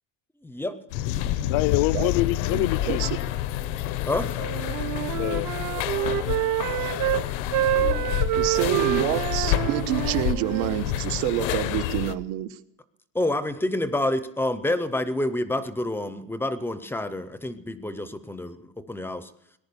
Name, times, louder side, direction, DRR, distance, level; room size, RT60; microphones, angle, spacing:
voice 1, 0.4-0.8 4.1-4.3 13.1-19.3, left 1 dB, 5° left, 0.5 m, -28 dB
sound 1, 0.9-12.1, left 12 dB, 85° left, 0.9 m, -28 dB
voice 2, 1.4-3.1 3.7-3.8 5.2-5.5, left 18 dB, 65° left, 0.6 m, -26 dB
voice 3, 2.5-3.1 8.4-12.5, right 13 dB, 90° right, 1.1 m, -27 dB
Wind instrument woodwind instrument, 4.4-7.2 7.5-10.8, right 14 dB, 50° right, 0.6 m, -27 dB
18.5 x 11.0 x 6.8 m
cardioid pair, 170°, 36 cm